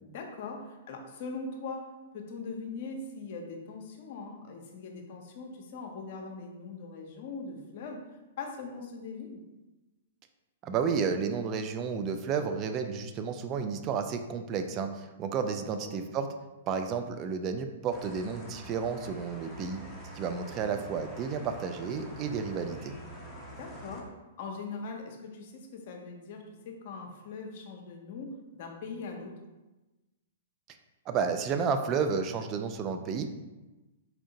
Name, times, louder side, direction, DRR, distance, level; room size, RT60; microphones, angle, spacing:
voice 1, 0.0-1.9 2.1-8.0 8.4-9.4 15.5-16.0 23.5-24.1 24.4-29.3, left 4 dB, 50° left, 2 dB, 0.7 m, -41 dB
voice 2, 10.6-16.3 16.7-19.8 20.1-22.9 31.1-33.3, right 6 dB, 30° right, 7 dB, 0.3 m, -31 dB
sound 1, 17.9-24.0, right 1 dB, 5° left, 0.8 m, -46 dB
4.2 x 2.7 x 2.7 m, 1.1 s
hypercardioid pair, 115°, 0 cm